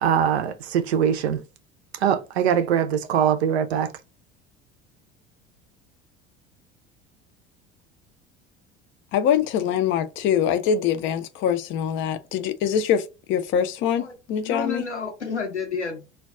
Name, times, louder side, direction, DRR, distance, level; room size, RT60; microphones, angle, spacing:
voice 1, 0.0-1.4 2.0-3.9, right 8 dB, 65° right, 0.5 m, -22 dB
voice 2, 9.1-13.0 13.3-14.8, left 8 dB, 35° left, 0.4 m, -23 dB
voice 3, 14.0-16.0, left 5 dB, 85° left, 0.7 m, -31 dB
2.2 x 2.2 x 3.5 m
figure-of-eight pair, 65°, 34 cm